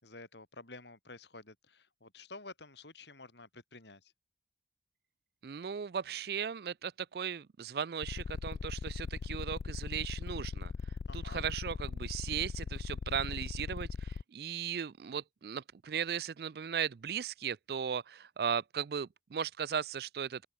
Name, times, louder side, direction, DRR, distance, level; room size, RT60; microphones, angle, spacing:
voice 1, 0.0-4.1 11.1-11.5, left 3 dB, 75° left, 4.8 m, -51 dB
voice 2, 5.4-10.7 11.1-20.5, right 7 dB, 60° right, 0.4 m, -37 dB
sound 1, 8.0-14.2, left 5 dB, 60° left, 0.3 m, -39 dB
open air
head